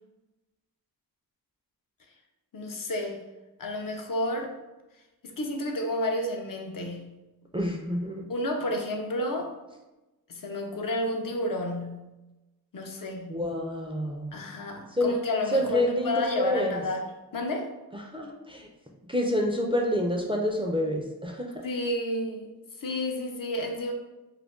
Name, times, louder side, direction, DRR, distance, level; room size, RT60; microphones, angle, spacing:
voice 1, 2.5-3.2 3.6-4.5 5.2-7.2 8.3-9.5 10.3-12.1 12.7-13.4 14.3-17.1 17.3-17.7 21.6-23.9, left 1 dB, 60° left, 2 dB, 0.5 m, -31 dB
voice 2, 7.5-8.2 13.3-14.3 14.9-15.1 15.5-16.8 17.9-18.7 19.1-21.5, left 1 dB, 15° right, 0 dB, 0.4 m, -28 dB
2.4 x 2.2 x 3.5 m, 1.0 s
wide cardioid pair, 45°, 38 cm